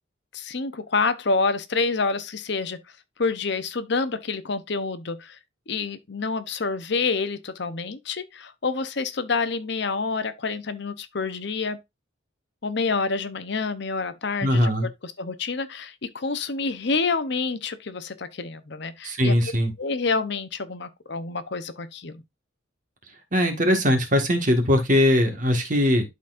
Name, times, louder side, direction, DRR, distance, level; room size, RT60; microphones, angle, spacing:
voice 1, 0.3-2.8 3.2-5.4 5.7-11.8 12.6-14.7 15.0-19.4 19.8-22.2, left 4 dB, 60° left, 0.8 m, -28 dB
voice 2, 14.4-14.9 19.0-19.7 23.3-26.0, left 1 dB, 40° right, 1.7 m, -20 dB
12.0 x 4.1 x 2.5 m
head